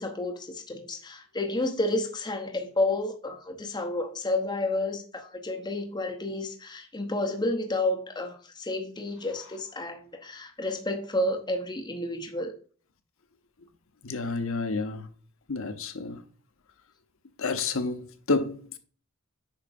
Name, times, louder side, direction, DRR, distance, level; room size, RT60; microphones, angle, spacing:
voice 1, 0.0-12.5, left 2 dB, 20° left, 0.8 m, -30 dB
voice 2, 14.0-15.1 15.5-16.2 17.4-18.8, left 3 dB, 70° left, 0.9 m, -30 dB
8.7 x 5.9 x 2.5 m
head